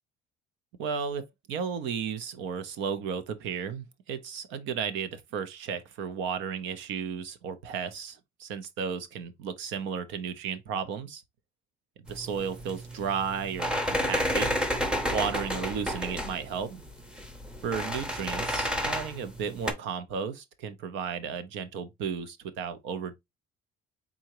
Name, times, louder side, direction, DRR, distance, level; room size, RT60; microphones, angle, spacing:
voice 1, 0.8-11.2 12.1-14.5 15.1-16.8 17.6-23.1, right 6 dB, 75° right, 0.8 m, -34 dB
sound 1, 12.1-19.7, equal, 5° right, 0.7 m, -31 dB
4.2 x 3.8 x 2.9 m
cardioid pair, 135°, 20 cm